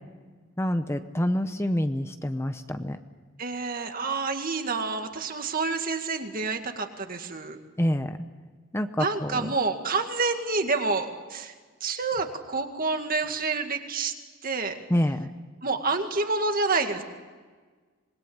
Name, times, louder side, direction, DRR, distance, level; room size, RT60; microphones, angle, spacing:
voice 1, 0.6-3.0 7.8-8.2 8.7-9.4 14.9-15.3, equal, 10° left, 8 dB, 0.8 m, -27 dB
voice 2, 3.4-7.6 9.0-11.5 11.8-14.1 14.4-14.8 15.6-17.0, right 3 dB, 45° right, 6 dB, 2.1 m, -28 dB
26.0 x 21.0 x 8.7 m, 1.5 s
head